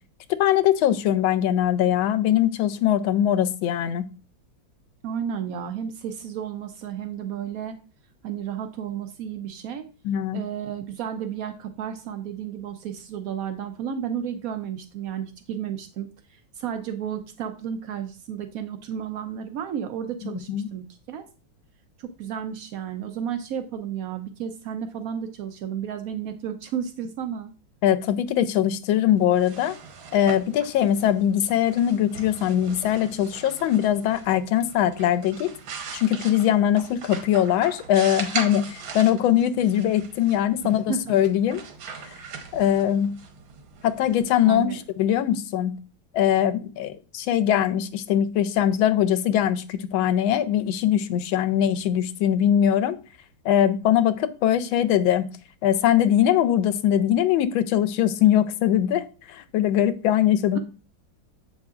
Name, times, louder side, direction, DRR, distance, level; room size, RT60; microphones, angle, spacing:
voice 1, 0.4-4.0 10.0-10.4 20.2-20.7 27.8-29.8 30.1-35.5 35.9-41.6 42.5-43.2 43.8-44.7 45.0-45.7 46.1-53.0 53.4-55.2 55.6-60.6, left 10 dB, 90° left, 11 dB, 1.4 m, -21 dB
voice 2, 5.0-7.8 8.2-9.9 10.3-21.2 22.0-27.5 40.6-41.1 44.5-44.8 60.5-60.6, right 8 dB, 90° right, 7 dB, 0.7 m, -32 dB
sound 1, 29.2-44.9, right 6 dB, 75° right, 1.6 m, -40 dB
7.6 x 5.4 x 2.4 m, 0.35 s
omnidirectional pair, 2.1 m